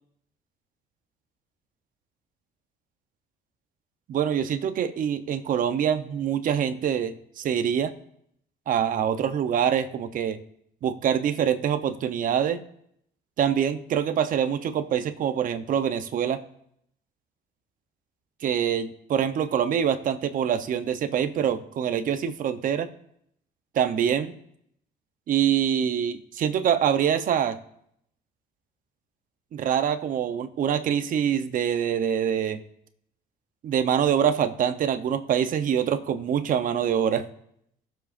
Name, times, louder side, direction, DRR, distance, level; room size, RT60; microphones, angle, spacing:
voice 1, 4.1-7.9 8.7-10.4 10.8-12.6 13.4-16.4 18.4-22.9 23.7-24.3 25.3-27.6 29.5-32.6 33.6-37.3, right 8 dB, 55° right, 10 dB, 0.8 m, -25 dB
19.0 x 7.3 x 2.6 m, 0.73 s
cardioid pair, 110°, 17 cm